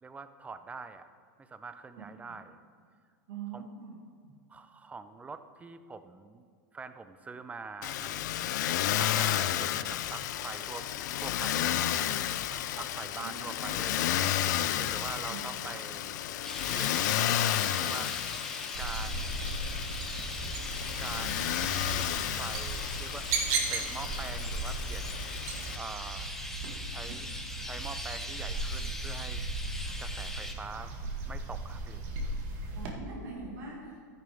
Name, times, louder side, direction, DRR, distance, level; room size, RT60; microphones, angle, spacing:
voice 1, 0.0-1.1 1.4-2.6 3.5-3.7 4.5-6.5 6.7-8.3 9.0-10.9 11.1-12.1 12.5-16.2 16.7-18.3 18.8-19.5 21.0-22.1 22.3-25.2 25.7-26.3 26.9-27.3 27.6-29.4 30.0-31.0 31.2-32.4, right 4 dB, 15° right, 11 dB, 0.6 m, -44 dB
voice 2, 3.3-3.9 4.2-4.3 13.1-13.8 15.3-15.4 32.7-34.1, right 4 dB, 75° right, -6 dB, 2.3 m, -43 dB
Motor vehicle (road), 7.8-25.8, left 12 dB, 70° left, 0.5 m, -32 dB
Chirp tweet, 16.4-30.5, left 1 dB, 5° left, 1.0 m, -41 dB
sound 1, 18.7-32.9, right 3 dB, 60° right, 1.7 m, -36 dB
12.5 x 10.0 x 3.5 m, 2.1 s
hypercardioid pair, 115°, 10 cm